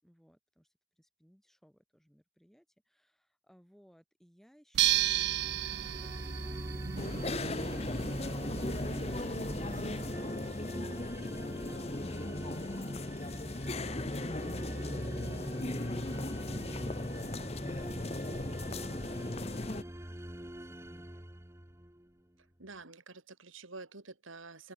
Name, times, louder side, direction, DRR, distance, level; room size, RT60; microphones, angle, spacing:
voice 1, 0.0-12.0 16.4-21.3, equal, ahead, 7.6 m, -63 dB
sound 1, 4.7-10.1, right 14 dB, 55° right, 0.4 m, -34 dB
sound 2, 4.9-22.1, equal, 15° right, 1.7 m, -43 dB
sound 3, 7.0-19.8, left 2 dB, 30° left, 1.0 m, -37 dB
voice 2, 22.6-24.7, right 3 dB, 85° right, 2.9 m, -48 dB
head